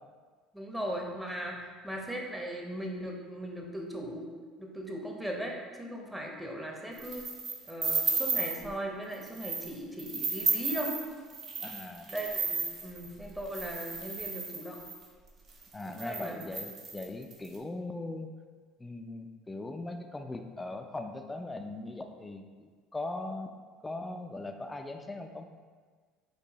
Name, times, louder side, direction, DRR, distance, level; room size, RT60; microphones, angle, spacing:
voice 1, 0.5-4.3 4.6-7.3 7.7-10.9 12.1-14.8 15.9-16.4, right 1 dB, 10° right, 0 dB, 0.8 m, -38 dB
sound 1, 7.0-8.7 9.1-9.7 10.0-15.0 15.6-15.7 15.9-17.5, right 4 dB, 50° right, 0.8 m, -33 dB
voice 2, 11.6-12.1 15.7-18.3 18.8-23.5 23.8-25.5, left 2 dB, 15° left, 5 dB, 0.4 m, -40 dB
4.6 x 2.6 x 3.9 m, 1.5 s
hypercardioid pair, 70°, 0 cm